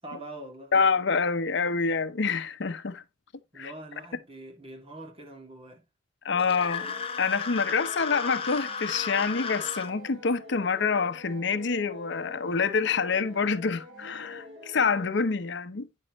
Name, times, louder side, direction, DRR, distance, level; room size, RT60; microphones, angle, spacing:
voice 1, 0.0-0.7 3.5-5.8, right 1 dB, 30° right, 2.4 m, -43 dB
voice 2, 0.7-3.0 3.6-3.7 6.2-15.9, left 5 dB, 65° left, 0.7 m, -27 dB
sound 1, 6.3-15.1, left 2 dB, 75° right, 3.7 m, -46 dB
sound 2, 6.4-9.9, left 5 dB, 30° left, 1.2 m, -34 dB
9.8 x 6.7 x 3.0 m
head